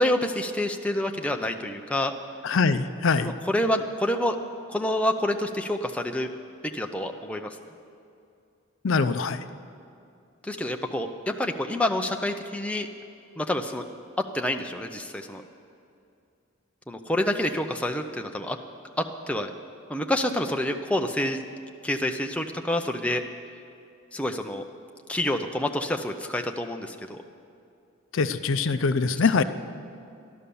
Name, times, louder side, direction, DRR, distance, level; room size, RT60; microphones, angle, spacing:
voice 1, 0.0-2.1 3.2-4.4 4.7-6.3 6.7-7.6 10.4-12.9 13.4-13.8 14.3-15.4 16.9-18.6 19.0-19.5 19.9-21.4 21.8-23.2 24.1-24.6 25.1-27.2, left 1 dB, 5° left, 4 dB, 0.5 m, -27 dB
voice 2, 2.4-3.3 8.8-9.4 28.1-29.4, left 4 dB, 65° left, 11 dB, 0.5 m, -23 dB
13.0 x 11.5 x 6.9 m, 2.5 s
head